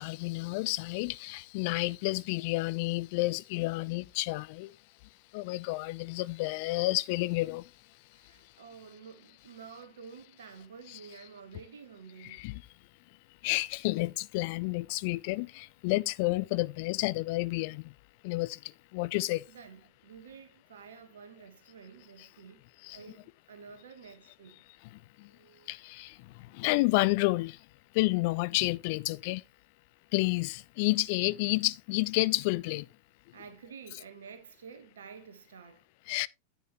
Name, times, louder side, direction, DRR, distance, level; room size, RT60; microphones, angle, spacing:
voice 1, 0.0-4.7 5.3-7.6 12.2-12.6 13.4-17.9 18.2-18.6 18.9-19.4 22.8-23.0 25.2-25.3 25.7-26.2 26.5-27.6 27.9-29.4 30.1-32.9 36.1-36.3, left 21 dB, 45° left, 0.4 m, -30 dB
voice 2, 8.1-12.5 19.5-22.6 22.9-24.6 25.2-25.7 33.3-35.8, right 6 dB, 65° right, 1.3 m, -50 dB
10.0 x 9.1 x 3.0 m
figure-of-eight pair, 90°, 0 cm